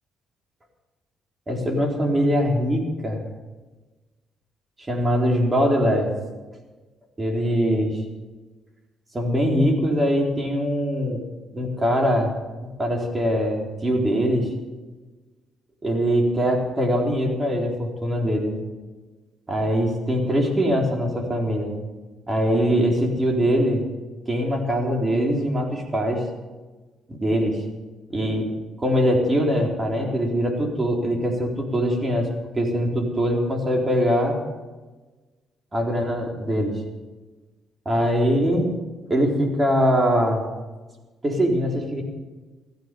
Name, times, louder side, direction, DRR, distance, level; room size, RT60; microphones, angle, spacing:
voice 1, 1.5-3.2 4.9-6.1 7.2-8.0 9.1-11.2 11.5-12.3 12.6-14.5 15.8-18.5 19.5-21.7 22.3-23.8 24.3-26.3 27.1-27.6 28.1-28.5 28.8-32.3 32.5-34.4 35.7-36.7 37.9-38.7 39.1-40.4 41.2-42.0, equal, 25° right, 0 dB, 4.0 m, -22 dB
16.5 x 14.5 x 5.4 m, 1.3 s
cardioid pair, 90°, 0 cm